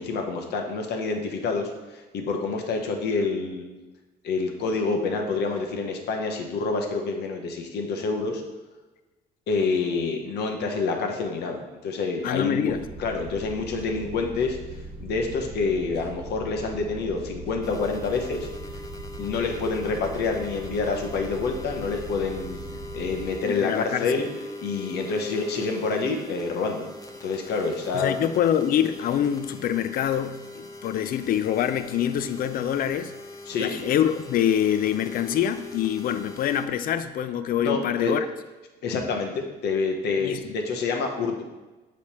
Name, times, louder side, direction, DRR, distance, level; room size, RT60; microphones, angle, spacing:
voice 1, 0.0-3.6 4.2-8.4 9.5-12.7 13.0-14.6 15.0-18.5 19.2-22.6 22.9-24.3 24.6-26.8 27.2-28.1 33.5-33.7 37.6-38.1 38.8-41.4, left 4 dB, 75° left, 3 dB, 0.9 m, -27 dB
voice 2, 12.2-12.8 23.5-24.1 27.9-33.1 33.6-38.3 40.2-40.5, left 10 dB, 55° left, 11 dB, 0.4 m, -25 dB
sound 1, 12.7-23.3, right 2 dB, 40° right, 1.1 m, -40 dB
sound 2, 17.6-36.7, left 2 dB, 20° left, 0.7 m, -41 dB
7.0 x 3.2 x 4.3 m, 1.2 s
cardioid pair, 105°, 17 cm